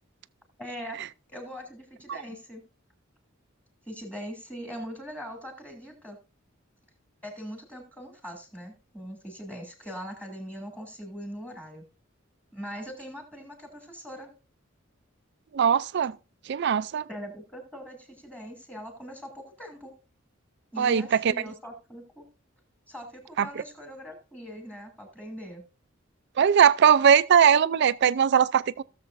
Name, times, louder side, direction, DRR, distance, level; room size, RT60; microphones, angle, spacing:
voice 1, 0.6-1.0 1.3-2.6 3.9-6.2 7.2-11.8 12.5-14.3 17.1-19.9 20.7-22.2 22.9-25.6, equal, 5° left, 2.6 m, -41 dB
voice 2, 15.5-16.1 16.5-17.1 20.8-21.3 23.4-23.5 26.4-28.8, right 8 dB, 60° right, 0.4 m, -20 dB
17.0 x 7.0 x 2.6 m
head